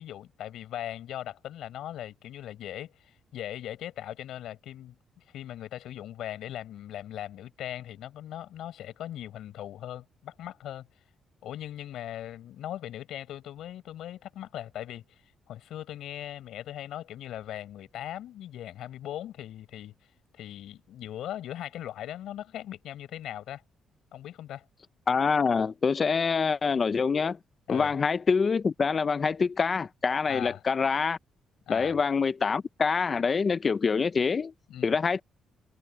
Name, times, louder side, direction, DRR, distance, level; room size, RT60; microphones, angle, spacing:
voice 1, 0.0-10.9 11.4-15.2 15.5-19.9 20.3-23.6 24.1-24.6 27.7-27.9 30.3-30.6 31.7-32.0 34.7-35.0, left 12 dB, 80° left, 5.3 m, -39 dB
voice 2, 25.1-27.4 27.7-31.2 31.7-34.5 34.8-35.2, left 5 dB, 40° left, 0.6 m, -25 dB
cardioid pair, 90°, 0 cm